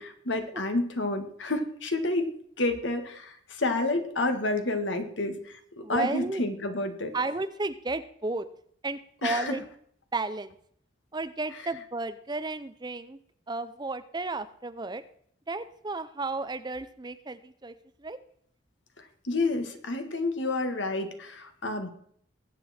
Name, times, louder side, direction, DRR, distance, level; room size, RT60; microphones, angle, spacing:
voice 1, 0.0-2.3 2.6-7.1 9.2-9.6 19.2-21.9, left 2 dB, 70° left, 7 dB, 1.8 m, -29 dB
voice 2, 5.8-6.4 7.1-8.5 8.8-9.6 10.1-10.5 11.1-13.2 13.5-15.0 15.5-17.7 18.0-18.2, right 3 dB, 20° right, 12 dB, 0.6 m, -33 dB
20.5 x 8.4 x 4.3 m, 0.64 s
head